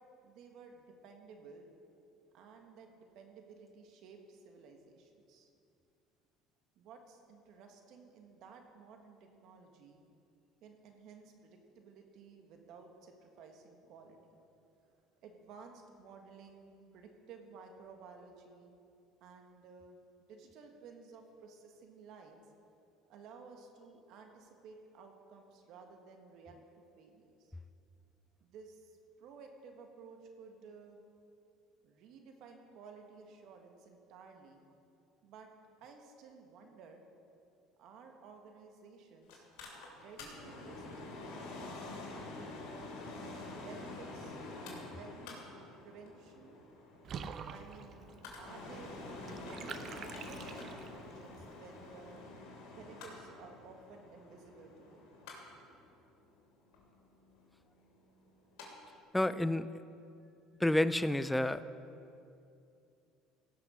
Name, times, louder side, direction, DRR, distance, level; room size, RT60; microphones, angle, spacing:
voice 1, 0.2-1.7 2.3-5.5 6.7-10.0 10.6-14.5 15.2-18.7 19.2-20.0 20.3-22.4 23.1-27.5 28.4-31.0 31.8-34.6 35.2-35.5 35.8-37.0 37.8-39.4 39.9-42.9 43.5-46.6 47.5-48.9 49.3-52.2 52.7-55.1, right 5 dB, 65° right, 4 dB, 1.7 m, -55 dB
Mechanical fan, 39.3-58.7 59.0-59.1, left 2 dB, 80° left, 3.0 m, -48 dB
Water / Bathtub (filling or washing), 47.0-51.1, right 7 dB, 45° right, 0.7 m, -47 dB
voice 2, 59.1-59.7 60.6-61.6, left 1 dB, 5° left, 14 dB, 0.4 m, -29 dB
17.0 x 6.6 x 5.7 m, 2.6 s
supercardioid pair, 115°, 0 cm